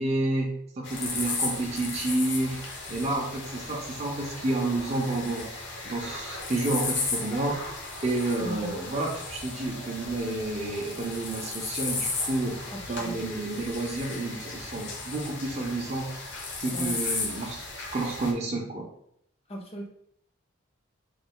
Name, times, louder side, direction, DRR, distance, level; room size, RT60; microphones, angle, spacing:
voice 1, 0.0-5.5 5.8-7.6 8.0-12.6 12.9-16.2 16.6-17.6 17.9-18.9, right 2 dB, 30° right, -1 dB, 0.5 m, -30 dB
sound 1, 0.8-18.3, left 3 dB, 60° left, 0.7 m, -35 dB
voice 2, 8.4-8.7 12.7-13.3 16.7-17.0 19.5-19.9, equal, 30° left, 1 dB, 0.6 m, -38 dB
3.1 x 2.2 x 3.7 m, 0.69 s
head